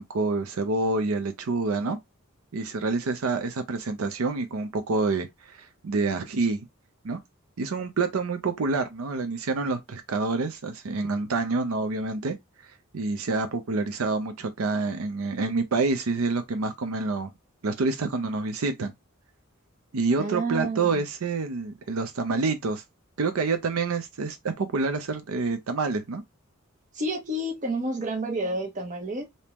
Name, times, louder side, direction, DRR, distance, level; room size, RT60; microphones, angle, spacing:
voice 1, 0.0-2.0 2.5-6.7 7.0-7.2 7.6-12.4 12.6-17.3 17.6-18.9 19.9-22.8 23.2-26.2, right 3 dB, 85° right, 0.5 m, -27 dB
voice 2, 20.2-21.0 26.9-29.2, right 1 dB, 35° right, 0.8 m, -30 dB
3.4 x 2.7 x 2.8 m
head